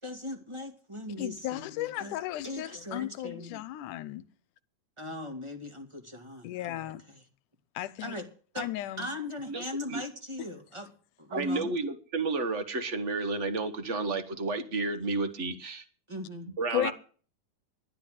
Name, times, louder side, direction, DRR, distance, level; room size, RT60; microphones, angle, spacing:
voice 1, 0.0-2.2 2.4-3.6 5.0-7.2 8.0-8.3 8.5-8.7 9.0-10.9 11.2-11.7 16.1-16.5, left 1 dB, 10° right, 1.9 m, -39 dB
voice 2, 1.2-4.2 6.4-7.0 7.8-8.2 8.6-9.1 16.7-16.9, left 14 dB, 80° left, 2.3 m, -34 dB
voice 3, 11.3-15.8 16.6-16.9, right 3 dB, 70° right, 0.7 m, -31 dB
12.0 x 10.5 x 6.5 m
omnidirectional pair, 3.6 m